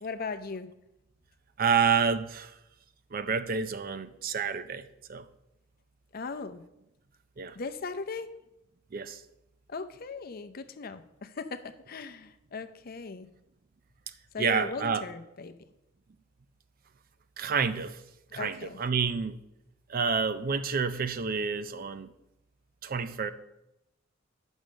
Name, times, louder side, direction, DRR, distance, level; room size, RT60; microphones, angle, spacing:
voice 1, 0.0-0.7 6.1-6.6 7.5-8.3 9.7-13.3 14.3-15.5 18.3-18.8, left 4 dB, 45° left, 9 dB, 0.6 m, -38 dB
voice 2, 1.6-2.5 3.1-5.3 7.4-7.6 8.9-9.2 14.4-15.0 17.4-18.0 18.3-19.4 19.9-22.1 22.8-23.3, right 6 dB, 45° right, 12 dB, 0.5 m, -29 dB
8.7 x 6.3 x 6.3 m, 0.88 s
head